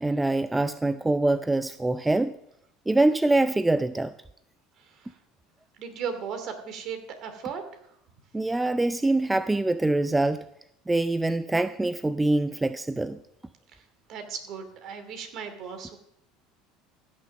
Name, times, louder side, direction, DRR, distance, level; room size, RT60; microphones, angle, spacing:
voice 1, 0.0-2.3 2.9-4.1 8.3-10.4 10.9-13.2, right 2 dB, 10° right, 0.5 m, -24 dB
voice 2, 4.8-5.2 5.8-7.6 13.7-13.8 14.1-16.0, right 7 dB, 55° right, 2.6 m, -37 dB
16.0 x 6.4 x 6.5 m
hypercardioid pair, 90°, 0 cm